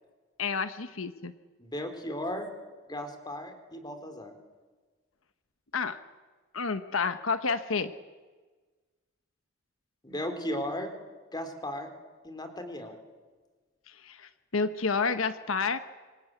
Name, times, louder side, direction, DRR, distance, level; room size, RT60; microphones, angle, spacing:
voice 1, 0.4-1.3 5.7-6.0 6.5-7.9 13.9-15.8, left 5 dB, 90° left, 11 dB, 1.3 m, -30 dB
voice 2, 1.6-2.5 2.9-4.3 10.0-10.9 11.3-11.9 12.2-13.0, left 1 dB, 20° left, 7 dB, 3.9 m, -36 dB
26.5 x 24.5 x 9.3 m, 1.3 s
head